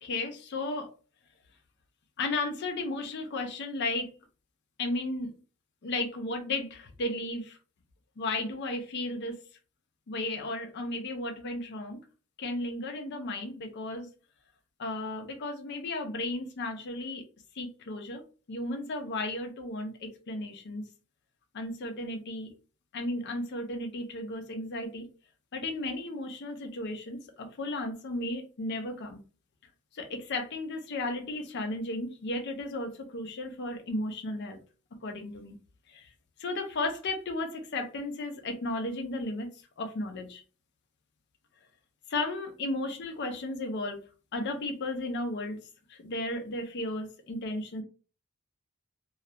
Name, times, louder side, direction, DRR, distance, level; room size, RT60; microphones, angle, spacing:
voice 1, 0.0-0.9 2.2-4.2 4.8-5.4 5.8-7.6 8.2-9.4 10.1-12.0 12.4-14.1 14.8-17.2 17.5-18.2 18.5-20.8 21.5-22.5 22.9-25.1 25.5-29.2 29.9-34.6 35.0-35.6 35.9-36.1 36.4-40.4 42.1-44.0 44.3-45.6 45.9-47.8, left 2 dB, 55° left, 0.5 m, -34 dB
2.3 x 2.1 x 2.7 m
head